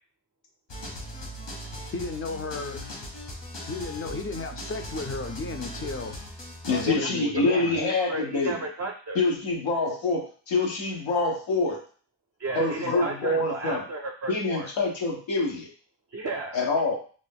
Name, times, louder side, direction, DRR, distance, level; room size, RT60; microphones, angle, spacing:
sound 1, 0.7-6.9, equal, 70° left, 1.2 m, -39 dB
voice 1, 1.9-2.8 3.7-6.1 6.7-7.8 12.6-13.5, left 3 dB, 30° left, 7 dB, 0.4 m, -34 dB
voice 2, 6.7-8.6 9.1-11.8 12.5-13.8 14.3-15.7 16.5-16.9, left 3 dB, 90° left, 0 dB, 0.7 m, -26 dB
voice 3, 7.5-9.2 12.4-14.7 16.1-16.6, right 2 dB, 40° right, 2 dB, 0.4 m, -33 dB
2.5 x 2.0 x 3.4 m, 0.42 s
cardioid pair, 45°, 45 cm